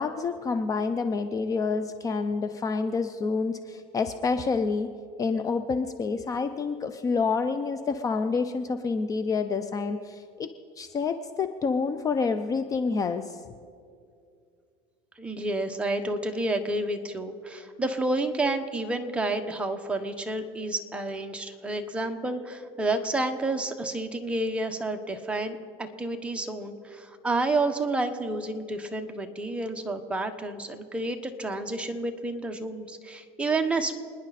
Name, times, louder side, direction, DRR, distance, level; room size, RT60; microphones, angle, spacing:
voice 1, 0.0-4.9 5.2-10.5 10.8-13.4, left 4 dB, 25° left, 9 dB, 0.6 m, -28 dB
voice 2, 15.2-34.0, right 2 dB, 10° right, 4 dB, 1.2 m, -30 dB
29.0 x 10.5 x 4.2 m, 2.3 s
supercardioid pair, 125°, 13 cm